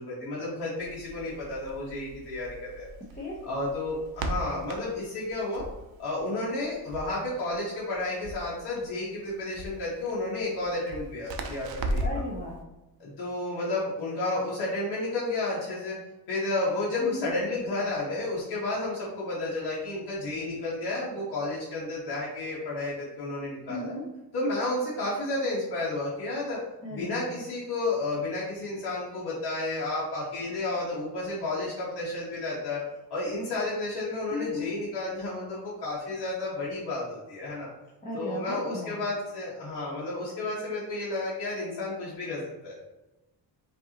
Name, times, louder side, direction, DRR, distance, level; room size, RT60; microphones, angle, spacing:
voice 1, 0.0-2.9 3.4-5.6 6.0-12.0 13.0-16.0 16.3-23.9 24.3-26.6 26.9-32.8 33.1-37.7 38.1-42.7, left 2 dB, 70° left, -8 dB, 1.4 m, -31 dB
Crackle, 0.8-12.3, right 1 dB, 65° right, 0.6 m, -38 dB
voice 2, 12.0-12.6 17.0-17.3 23.7-24.0 26.8-27.3 34.3-34.7 38.0-39.0, left 1 dB, 20° left, -7 dB, 0.9 m, -35 dB
5.3 x 2.7 x 2.9 m, 1.0 s
wide cardioid pair, 145°, 40 cm